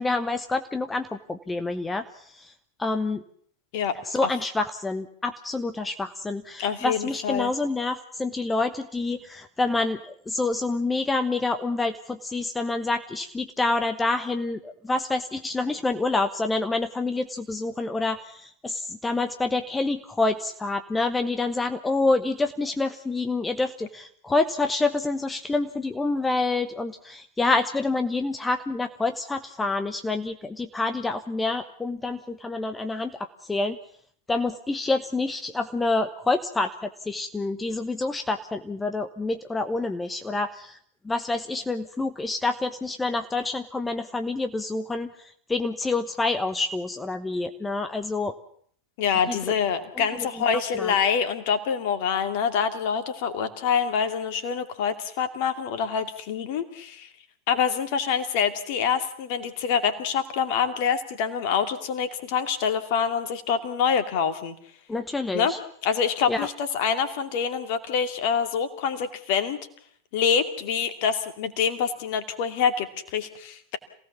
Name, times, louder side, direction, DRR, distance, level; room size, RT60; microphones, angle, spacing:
voice 1, 0.0-2.5 2.8-3.2 4.1-33.8 34.3-40.8 41.0-45.1 45.5-48.3 49.3-49.4 50.1-50.3 50.8-50.9 64.9-65.6 66.3-66.5, left 3 dB, 10° left, 8 dB, 1.1 m, -27 dB
voice 2, 6.6-7.5 49.0-57.1 57.5-64.5 65.3-65.5 65.8-69.6 70.1-73.8, left 7 dB, 45° left, 9 dB, 2.6 m, -26 dB
27.0 x 17.5 x 7.2 m, 0.62 s
figure-of-eight pair, 90°, 0 cm